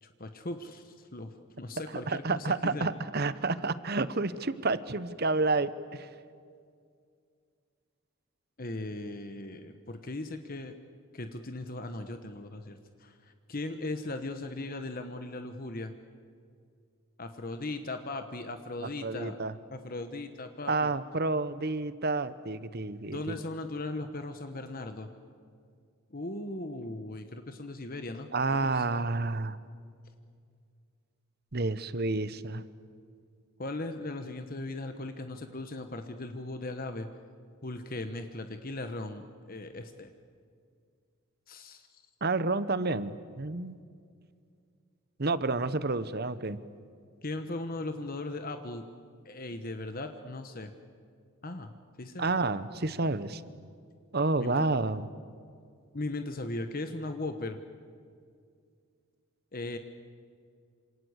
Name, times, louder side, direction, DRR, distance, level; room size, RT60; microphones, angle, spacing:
voice 1, 0.0-2.9 8.6-10.7 11.1-15.9 17.2-19.4 19.7-20.9 23.1-25.1 26.1-28.8 33.6-37.1 37.6-40.1 41.5-42.0 47.2-48.8 49.2-50.7 51.4-52.2 54.4-54.7 55.9-57.6 59.5-59.8, left 2 dB, 40° left, 7 dB, 1.2 m, -38 dB
voice 2, 2.1-6.1 19.0-19.5 20.7-23.4 28.3-29.6 31.5-32.6 42.2-43.8 45.2-46.6 52.2-53.4 54.1-55.1, right 3 dB, 45° right, 15 dB, 1.0 m, -30 dB
27.5 x 26.5 x 8.2 m, 2.2 s
head